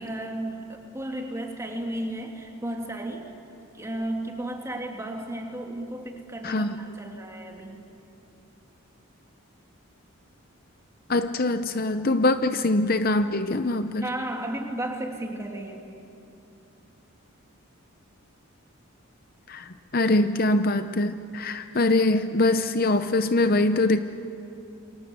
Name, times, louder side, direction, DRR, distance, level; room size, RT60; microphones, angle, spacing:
voice 1, 0.0-3.3 3.7-7.8 14.0-15.9, right 1 dB, 15° right, 2 dB, 2.6 m, -34 dB
voice 2, 6.4-6.8 11.1-14.1 19.5-24.0, left 2 dB, 40° left, 10 dB, 0.7 m, -23 dB
28.5 x 25.0 x 8.2 m, 2.7 s
head